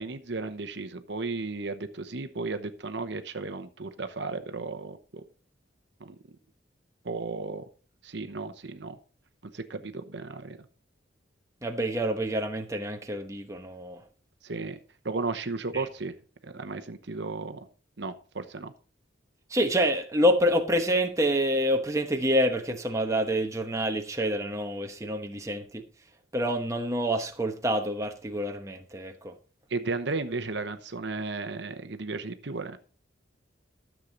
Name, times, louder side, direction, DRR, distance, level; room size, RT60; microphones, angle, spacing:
voice 1, 0.0-5.2 6.0-6.2 7.0-7.6 8.0-9.0 9.4-10.6 14.4-14.8 15.0-16.1 16.4-17.7 18.0-18.7 29.7-32.8, right 3 dB, 65° right, 0.9 m, -34 dB
voice 2, 11.6-14.0 15.7-15.8 19.5-25.8 26.3-29.3, equal, 15° right, 1.0 m, -27 dB
13.0 x 7.4 x 3.9 m
head